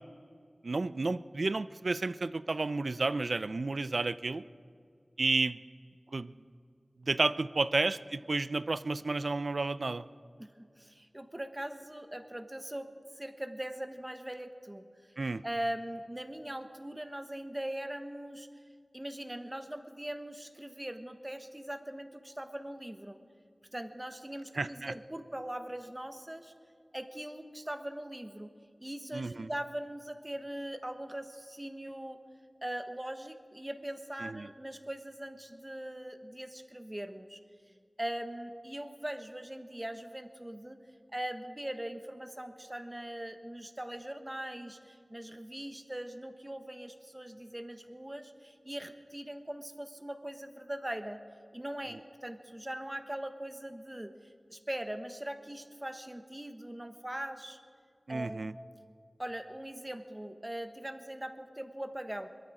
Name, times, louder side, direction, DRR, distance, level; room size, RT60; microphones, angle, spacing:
voice 1, 0.6-4.4 5.2-5.6 6.1-6.3 7.0-10.0 15.2-15.4 24.5-24.9 29.1-29.5 34.2-34.5 58.1-58.5, right 3 dB, 80° right, 15 dB, 0.4 m, -31 dB
voice 2, 10.4-14.9 15.4-18.5 18.9-23.2 23.7-26.5 26.9-28.5 28.8-32.2 32.6-37.4 38.0-40.8 41.1-51.2 51.5-54.1 54.5-57.6 58.1-58.5 59.2-62.3, right 1 dB, 20° right, 8 dB, 1.2 m, -41 dB
22.0 x 13.0 x 5.0 m, 2.3 s
wide cardioid pair, 45°, 0 cm